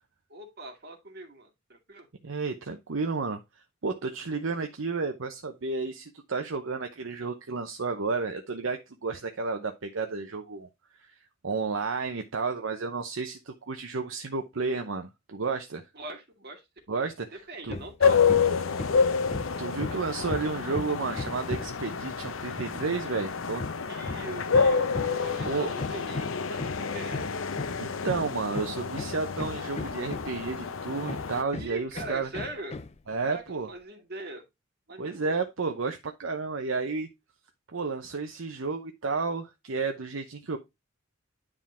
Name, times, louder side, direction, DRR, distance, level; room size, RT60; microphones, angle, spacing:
voice 1, 0.3-2.1 15.9-16.6 17.0-17.1 17.3-19.1 23.9-27.3 31.6-32.8 33.2-34.4 34.9-35.3, right 2 dB, 55° right, 2.2 m, -42 dB
voice 2, 2.2-3.4 3.8-10.7 11.0-11.1 11.4-15.8 16.9-17.8 19.6-23.7 25.5-25.7 27.8-32.3 33.1-33.7 35.0-37.1 37.7-40.6, right 4 dB, 70° right, 0.8 m, -32 dB
Hammer, 17.7-18.0 18.3-21.9 23.6-30.5 31.1-33.0, left 3 dB, 30° left, 0.5 m, -37 dB
sound 1, 18.0-31.4, left 5 dB, 75° left, 0.7 m, -28 dB
9.8 x 3.7 x 4.3 m
head